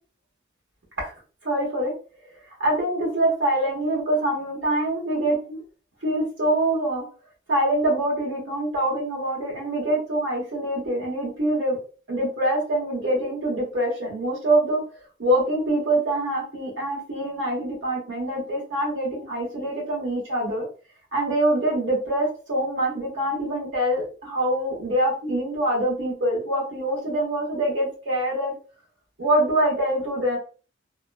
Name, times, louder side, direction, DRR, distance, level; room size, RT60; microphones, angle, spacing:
voice 1, 1.4-1.9 2.6-5.6 6.0-7.0 7.5-11.8 12.1-14.8 15.2-20.7 21.1-28.5 29.2-30.4, right 1 dB, 75° right, -2 dB, 1.1 m, -24 dB
2.8 x 2.1 x 2.3 m, 0.37 s
head